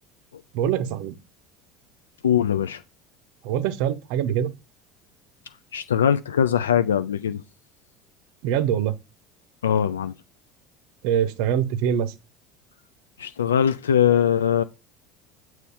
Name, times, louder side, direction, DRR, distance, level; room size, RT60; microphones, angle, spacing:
voice 1, 0.5-1.2 3.4-4.5 8.4-8.9 11.0-12.1, right 9 dB, 65° right, 0.6 m, -24 dB
voice 2, 2.2-2.8 5.7-7.4 9.6-10.1 13.2-14.6, left 9 dB, 85° left, 0.3 m, -21 dB
6.8 x 3.1 x 5.3 m
hypercardioid pair, 70°, 0 cm